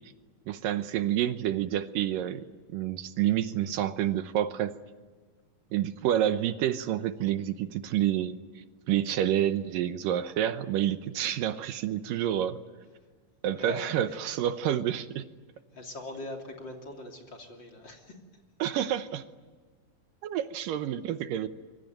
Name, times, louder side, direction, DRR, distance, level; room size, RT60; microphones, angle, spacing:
voice 1, 0.5-4.7 5.7-8.4 8.9-12.6 13.4-15.3 18.6-19.2 20.2-21.5, right 11 dB, 75° right, 11 dB, 2.5 m, -28 dB
voice 2, 13.5-14.1 15.7-18.2, left 2 dB, 35° left, 2 dB, 3.3 m, -42 dB
25.5 x 23.5 x 9.0 m, 1.4 s
omnidirectional pair, 4.1 m